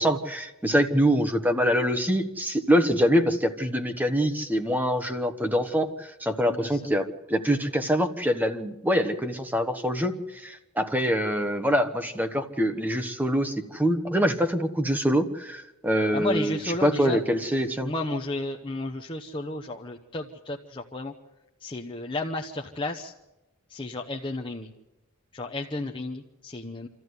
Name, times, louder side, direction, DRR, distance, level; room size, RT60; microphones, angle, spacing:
voice 1, 0.0-17.9, equal, 10° right, 6 dB, 1.2 m, -25 dB
voice 2, 6.5-6.8 16.1-17.2 17.5-21.1 21.6-23.1 23.7-24.7 25.3-26.9, left 2 dB, 20° left, 2 dB, 0.9 m, -33 dB
27.0 x 14.0 x 9.6 m, 0.99 s
head